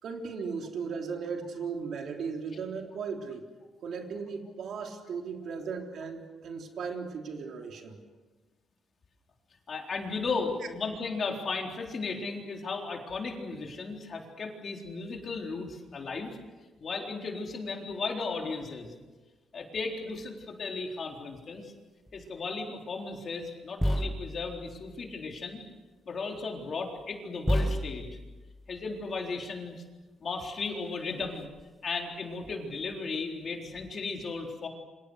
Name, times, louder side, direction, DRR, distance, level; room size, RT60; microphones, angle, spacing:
voice 1, 0.0-3.4 3.8-8.0, right 5 dB, 60° right, 3 dB, 3.5 m, -37 dB
voice 2, 9.7-16.3 16.8-18.9 19.5-21.7 22.1-25.6 26.1-28.1 28.7-29.8 30.2-31.5 31.8-34.7, left 4 dB, 40° left, 1 dB, 4.0 m, -35 dB
Desktop thump, 20.1-20.3 22.1-22.3 23.8-25.4 26.6-26.7 27.4-29.2 30.8-30.9 31.1-31.7 32.4-33.0 33.7-33.9, equal, ahead, 0.8 m, -33 dB
29.5 x 26.0 x 6.5 m, 1.3 s
cardioid pair, 145°, 0 cm